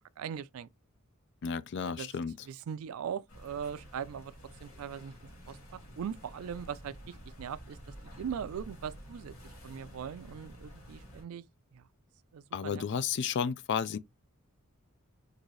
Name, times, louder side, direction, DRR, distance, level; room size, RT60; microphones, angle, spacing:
voice 1, 0.2-0.7 1.8-2.1 2.5-4.3 4.6-5.1 5.5-5.6 6.0-7.0 7.4-7.8 8.0-9.3 9.6-11.4 11.7-11.8 12.3-12.8, right 8 dB, 80° right, 0.4 m, -40 dB
voice 2, 1.4-2.5 12.5-14.0, left 7 dB, 55° left, 0.4 m, -32 dB
sound 1, 3.3-11.2, equal, 80° left, 2.0 m, -50 dB
3.9 x 2.6 x 3.1 m
head